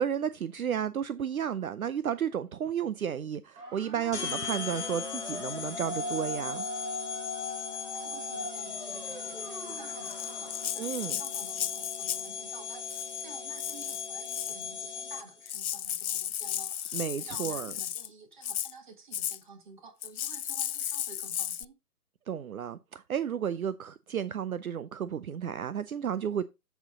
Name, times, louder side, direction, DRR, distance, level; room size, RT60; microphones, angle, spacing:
voice 1, 0.0-6.6 10.8-11.2 16.9-17.7 22.3-26.4, right 8 dB, 65° right, 0.6 m, -32 dB
sound 1, 3.6-10.8, equal, 80° right, 4.3 m, -40 dB
sound 2, 4.1-15.5, left 7 dB, 45° left, 1.1 m, -38 dB
voice 2, 7.3-21.7, right 4 dB, 30° right, 1.8 m, -51 dB
Rattle (instrument), 10.1-12.3 12.8-13.2 13.6-14.6 15.2-15.3 15.5-18.1 18.4-18.7 19.1-19.4 20.0-21.6, left 10 dB, 65° left, 0.5 m, -35 dB
7.6 x 7.2 x 3.6 m
hypercardioid pair, 165°, 46 cm